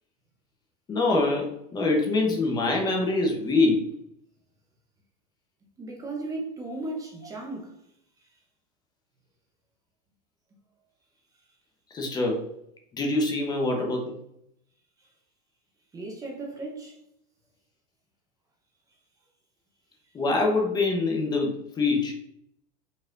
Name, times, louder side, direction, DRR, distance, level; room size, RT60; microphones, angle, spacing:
voice 1, 0.9-3.8 11.9-12.5 12.9-14.2 20.1-22.1, left 3 dB, 20° left, 0.9 m, -24 dB
voice 2, 5.8-7.7 15.9-17.0, right 2 dB, 15° right, 0.8 m, -35 dB
5.1 x 4.0 x 2.6 m
supercardioid pair, 145°, 20 cm